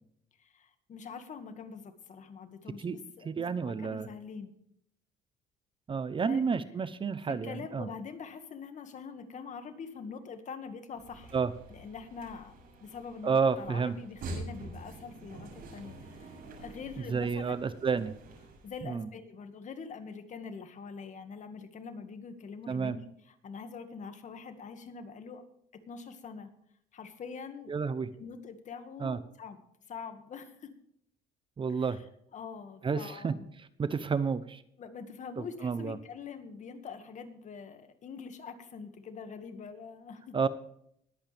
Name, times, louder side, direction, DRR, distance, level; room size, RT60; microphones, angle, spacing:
voice 1, 0.4-4.6 6.3-6.4 7.3-11.4 11.7-17.5 18.0-18.1 18.6-23.0 23.4-25.4 25.7-26.5 26.9-27.7 28.2-29.6 29.9-30.7 31.7-31.9 32.3-33.5 34.8-40.3, left 5 dB, 45° left, 8 dB, 2.0 m, -44 dB
voice 2, 3.2-4.1 5.9-7.9 11.3-11.5 13.2-13.9 17.1-18.1 18.8-19.1 22.7-23.0 27.7-28.1 29.0-29.2 31.6-32.0 32.8-34.6 35.4-36.0 40.3-40.5, right 5 dB, 30° right, 14 dB, 0.8 m, -30 dB
sound 1, 10.9-18.8, right 2 dB, 60° right, 6.7 m, -46 dB
20.5 x 8.7 x 3.5 m, 0.70 s
cardioid pair, 110°, 17 cm